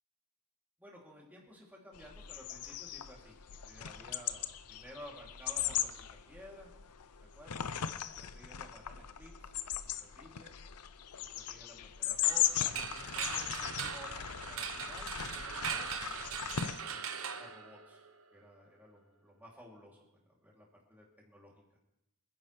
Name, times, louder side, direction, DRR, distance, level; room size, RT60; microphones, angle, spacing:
voice 1, 0.8-5.9 6.3-6.7 7.2-7.7 8.2-10.5 11.3-21.6, equal, 10° right, -3 dB, 2.9 m, -55 dB
sound 1, 1.9-16.8, left 10 dB, 90° left, 0.7 m, -38 dB
sound 2, 12.2-18.2, right 7 dB, 65° right, 1.1 m, -40 dB
27.0 x 10.0 x 3.3 m, 0.88 s
head